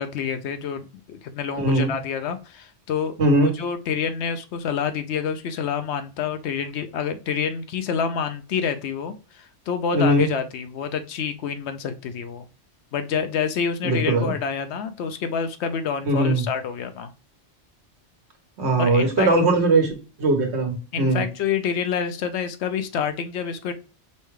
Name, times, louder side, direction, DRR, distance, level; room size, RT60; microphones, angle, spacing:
voice 1, 0.0-12.5 12.9-17.1 18.8-19.3 20.9-23.7, left 7 dB, 75° left, 9 dB, 0.8 m, -28 dB
voice 2, 1.6-1.9 3.2-3.5 9.9-10.3 13.8-14.3 16.0-16.4 18.6-19.9 20.2-21.2, right 2 dB, 70° right, 3 dB, 1.3 m, -20 dB
5.4 x 2.3 x 3.1 m, 0.34 s
omnidirectional pair, 1.2 m